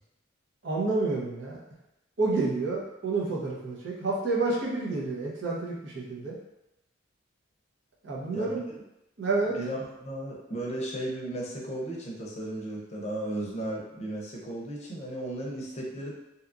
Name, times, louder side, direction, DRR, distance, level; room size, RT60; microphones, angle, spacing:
voice 1, 0.6-1.6 2.2-6.4 8.0-8.7 9.2-9.6, right 3 dB, 70° right, -4 dB, 0.7 m, -29 dB
voice 2, 8.3-8.6 9.5-16.1, right 1 dB, 35° left, -3 dB, 0.6 m, -35 dB
2.8 x 2.3 x 2.4 m, 0.91 s
head